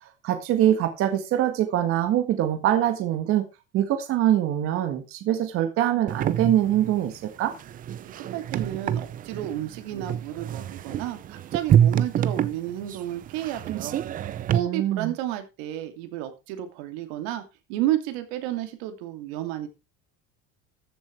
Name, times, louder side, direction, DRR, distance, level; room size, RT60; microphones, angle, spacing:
voice 1, 0.0-3.4 3.7-7.5 14.5-15.1, right 11 dB, 45° right, 7 dB, 1.8 m, -24 dB
sound 1, 6.1-14.6, right 10 dB, 25° right, 0.6 m, -27 dB
voice 2, 8.0-14.0 14.5-17.4 17.7-19.7, right 13 dB, 85° right, 8 dB, 2.7 m, -31 dB
14.5 x 7.1 x 4.6 m, 0.27 s
cardioid pair, 170°, 31 cm